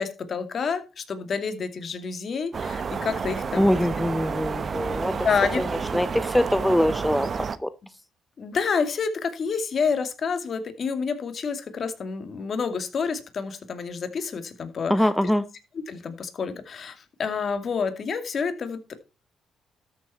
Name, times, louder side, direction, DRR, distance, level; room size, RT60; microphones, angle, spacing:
voice 1, 0.0-3.7 5.1-5.6 8.4-15.1 15.9-18.9, left 5 dB, 50° left, 8 dB, 2.4 m, -28 dB
sound 1, 2.5-7.6, right 5 dB, 45° right, 1.0 m, -30 dB
voice 2, 3.6-5.1 5.6-5.7 5.9-7.3 7.6-7.7 14.9-15.4, left 1 dB, 5° left, 12 dB, 0.8 m, -23 dB
13.0 x 7.3 x 4.3 m, 0.29 s
cardioid pair, 90°, 0 cm